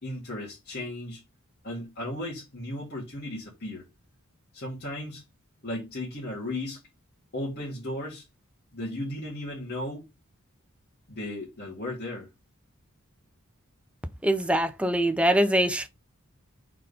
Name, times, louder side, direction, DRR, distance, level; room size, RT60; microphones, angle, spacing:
voice 1, 0.0-1.2 1.6-3.8 4.5-5.2 5.6-6.8 7.3-8.2 8.7-10.1 11.1-12.3, left 1 dB, 50° left, 2.1 m, -35 dB
voice 2, 14.2-15.9, right 1 dB, 5° right, 0.6 m, -23 dB
4.5 x 3.9 x 5.4 m
head